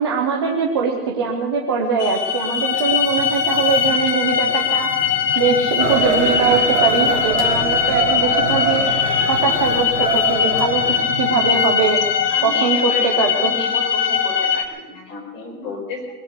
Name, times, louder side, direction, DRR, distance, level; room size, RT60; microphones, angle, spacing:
voice 1, 0.0-4.9 5.4-12.0 12.4-13.5, right 5 dB, 15° right, 0 dB, 0.6 m, -21 dB
sound 1, 2.0-14.6, left 7 dB, 90° left, 1.6 m, -20 dB
sound 2, 5.8-11.0, right 7 dB, 50° right, 2.1 m, -25 dB
voice 2, 12.3-16.2, left 3 dB, 30° left, -1 dB, 4.8 m, -33 dB
21.5 x 8.5 x 7.9 m, 1.2 s
hypercardioid pair, 165°, 46 cm